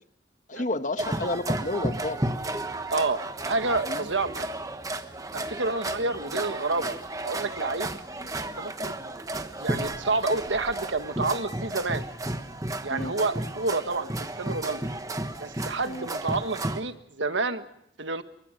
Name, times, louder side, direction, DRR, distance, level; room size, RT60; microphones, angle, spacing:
voice 1, 0.5-2.2 3.9-4.1 5.3-5.4 8.2-8.3 12.9-13.1 15.8-16.1, left 2 dB, 40° left, 10 dB, 1.2 m, -31 dB
sound 1, 1.0-16.8, right 1 dB, 20° right, 1.2 m, -33 dB
voice 2, 2.9-4.5 5.3-7.0 7.2-7.9 8.4-8.9 9.6-12.1 12.8-14.1 14.4-14.8 15.4-17.6 18.0-18.2, right 3 dB, 75° right, 9 dB, 1.6 m, -29 dB
28.0 x 23.5 x 5.2 m, 0.74 s
head